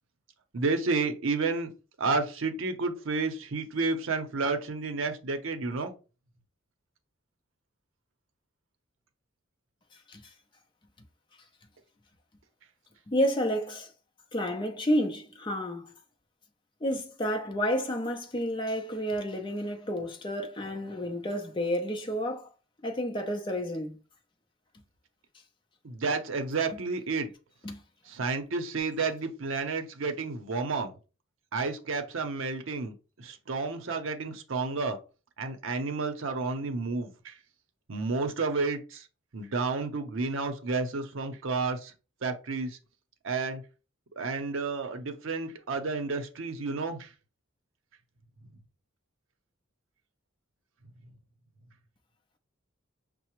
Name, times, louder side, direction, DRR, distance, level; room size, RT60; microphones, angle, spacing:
voice 1, 0.5-1.7 2.0-5.9 25.8-27.3 28.1-30.9 31.5-35.0 35.4-37.3 37.9-39.0 39.3-41.9 42.2-42.7 43.2-43.6 44.2-47.1, right 3 dB, 70° right, 0.6 m, -31 dB
voice 2, 13.1-13.9 14.3-15.9 16.8-22.4 22.8-24.0 27.6-27.8, equal, 25° left, 0.5 m, -30 dB
5.6 x 2.0 x 2.9 m
head